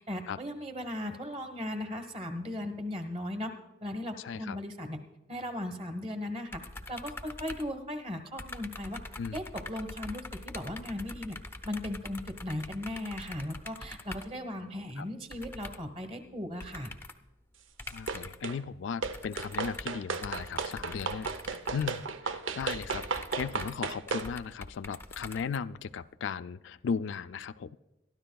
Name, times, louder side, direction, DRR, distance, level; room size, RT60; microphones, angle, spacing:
voice 1, 0.1-3.5 3.8-5.0 5.3-6.6 6.9-9.0 9.3-11.4 11.6-16.9, left 1 dB, 30° right, 7 dB, 1.2 m, -37 dB
voice 2, 4.2-4.6 9.2-9.4 15.0-15.1 17.9-21.3 21.7-27.8, left 6 dB, 70° left, 12 dB, 0.4 m, -36 dB
sound 1, 6.5-8.1 8.4-14.4 15.3-16.0 16.6-17.3 17.8-18.5 19.0-25.9, left 2 dB, 10° left, 0.5 m, -44 dB
sound 2, 18.1-18.6 19.0-24.3, right 4 dB, 80° right, 0.7 m, -35 dB
23.0 x 12.5 x 2.3 m, 1.0 s
head